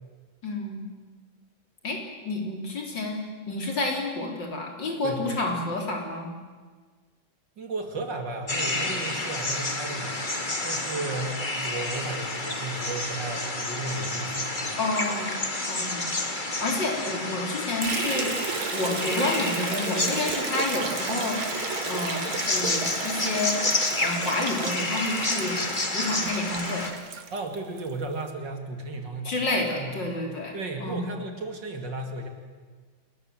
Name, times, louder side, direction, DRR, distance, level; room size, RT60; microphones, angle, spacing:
voice 1, 0.4-0.8 1.8-2.0 2.2-3.2 3.5-6.3 14.8-15.4 15.7-16.1 16.6-18.3 18.7-21.4 21.9-23.6 24.0-25.6 25.9-26.9 29.2-31.0, left 2 dB, 60° left, 1 dB, 4.5 m, -29 dB
voice 2, 5.0-5.4 7.6-10.2 10.6-14.8 27.3-29.3 29.8-30.0 30.5-32.3, right 3 dB, 60° right, 4 dB, 3.2 m, -34 dB
sound 1, 8.5-26.9, left 2 dB, 25° left, 2.4 m, -30 dB
Liquid, 17.8-27.9, right 8 dB, 80° right, 2.0 m, -34 dB
28.5 x 20.5 x 7.9 m, 1.5 s
omnidirectional pair, 2.2 m